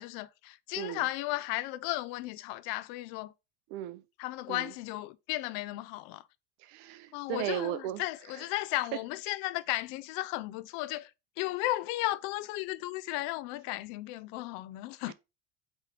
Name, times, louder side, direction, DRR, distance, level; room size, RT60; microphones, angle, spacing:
voice 1, 0.0-3.3 4.2-6.3 7.1-11.1 11.4-15.1, left 17 dB, 70° left, 0.5 m, -35 dB
voice 2, 3.7-4.0 4.5-4.7 6.6-8.0 8.4-8.5 15.1-15.2, right 13 dB, 70° right, 0.6 m, -36 dB
4.8 x 3.1 x 3.2 m
supercardioid pair, 130°, 37 cm